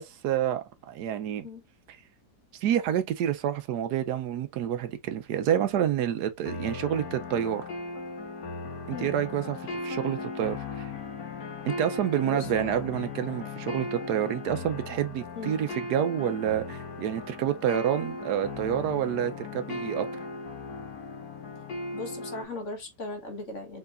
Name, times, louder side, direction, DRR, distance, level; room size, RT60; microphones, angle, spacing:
voice 1, 0.0-1.5 2.6-7.6 8.9-10.9 11.7-20.1, right 10 dB, 75° right, 1.2 m, -28 dB
sound 1, 6.5-22.5, left 3 dB, 65° left, 1.6 m, -37 dB
voice 2, 12.3-12.8 15.3-15.6 21.9-23.8, left 2 dB, 45° left, 1.6 m, -38 dB
4.5 x 4.0 x 2.5 m
omnidirectional pair, 1.8 m